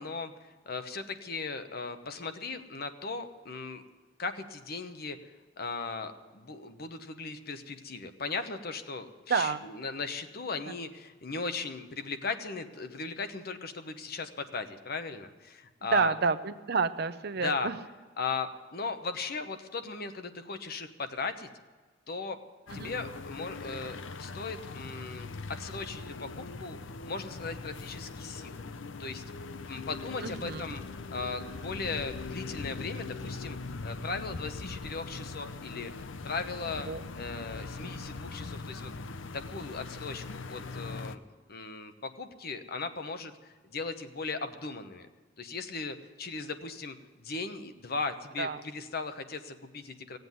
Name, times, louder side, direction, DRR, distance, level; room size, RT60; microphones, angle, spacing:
voice 1, 0.0-3.8 4.2-5.2 5.6-16.1 17.4-17.7 18.2-21.5 22.1-22.4 22.7-26.8 27.0-28.6 29.0-29.2 29.7-30.8 31.1-33.6 33.8-38.9 39.3-41.2 41.5-45.1 45.4-50.2, left 4 dB, 55° left, 9 dB, 1.0 m, -37 dB
voice 2, 9.3-9.6 15.9-17.8 22.7-22.9 30.2-30.6 36.9-37.0 48.4-48.6, right 5 dB, 55° right, 12 dB, 0.6 m, -29 dB
sound 1, 22.7-41.2, left 3 dB, 85° left, 0.7 m, -41 dB
17.0 x 7.9 x 9.3 m, 1.3 s
head